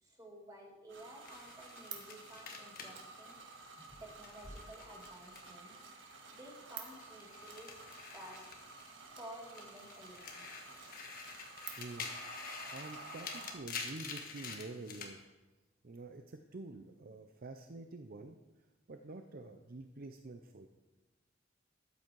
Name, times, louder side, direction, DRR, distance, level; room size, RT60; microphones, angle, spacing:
voice 1, 0.0-3.4 4.0-5.9 6.3-8.4 9.1-10.6, right 1 dB, 20° right, -1 dB, 2.5 m, -53 dB
sound 1, 0.9-13.6, right 4 dB, 80° right, 1.5 m, -51 dB
sound 2, 1.2-5.8 6.1-9.1 9.4-15.1, left 5 dB, 50° left, 1.5 m, -48 dB
sound 3, 3.8-6.0, equal, 75° left, 4.0 m, -57 dB
voice 2, 11.8-12.1 12.4-15.2 15.8-18.4 18.9-20.7, right 2 dB, 50° right, 6 dB, 0.6 m, -48 dB
13.5 x 8.4 x 4.7 m, 1.1 s
head